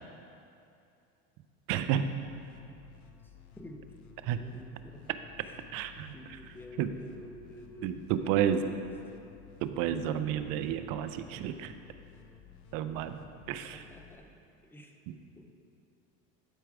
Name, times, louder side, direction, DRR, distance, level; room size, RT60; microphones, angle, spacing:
voice 1, 1.7-2.2 4.2-4.4 5.7-6.1 6.8-6.9 7.8-8.7 9.6-11.7 12.7-13.2 13.5-13.8 15.1-15.2, right 9 dB, 55° right, 10 dB, 0.6 m, -31 dB
sound 1, 1.9-14.2, left 7 dB, 50° left, 0.8 m, -55 dB
voice 2, 3.2-5.1 5.4-8.9 13.7-14.3 14.6-15.5, left 1 dB, 5° left, 3 dB, 0.6 m, -51 dB
11.5 x 4.6 x 4.8 m, 2.6 s
supercardioid pair, 125°, 39 cm